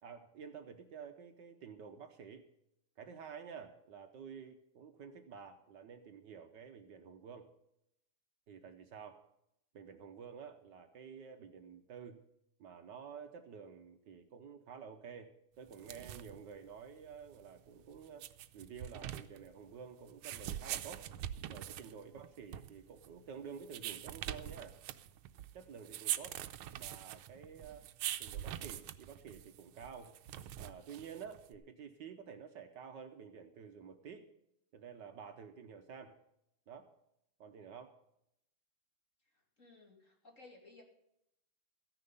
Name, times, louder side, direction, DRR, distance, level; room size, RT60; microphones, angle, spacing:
voice 1, 0.0-2.5 3.0-7.5 8.5-9.2 9.7-12.2 12.6-18.3 18.5-21.1 21.4-24.8 25.5-26.4 26.8-27.9 28.2-30.2 30.6-34.3 34.7-36.2 36.7-36.9 37.4-38.0, right 6 dB, 65° right, 7 dB, 1.4 m, -50 dB
sound 1, 15.7-31.6, right 12 dB, 85° right, 1.5 m, -44 dB
voice 2, 39.6-40.8, left 2 dB, 35° left, 1 dB, 2.8 m, -58 dB
14.5 x 10.0 x 5.4 m, 0.80 s
omnidirectional pair, 2.3 m